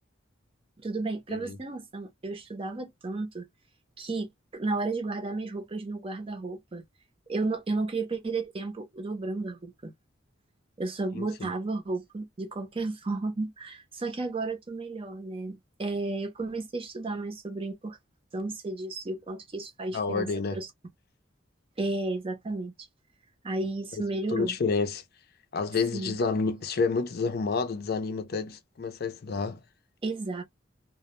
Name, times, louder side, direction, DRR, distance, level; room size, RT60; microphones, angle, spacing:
voice 1, 0.8-3.5 4.0-6.8 7.3-9.9 10.8-18.0 18.3-20.7 21.8-22.7 23.4-24.6 25.9-26.2 30.0-30.4, right 3 dB, 30° right, 0.6 m, -33 dB
voice 2, 11.1-11.5 19.9-20.6 24.3-25.0 25.5-29.6, left 4 dB, 55° left, 0.5 m, -29 dB
2.1 x 2.0 x 2.9 m
head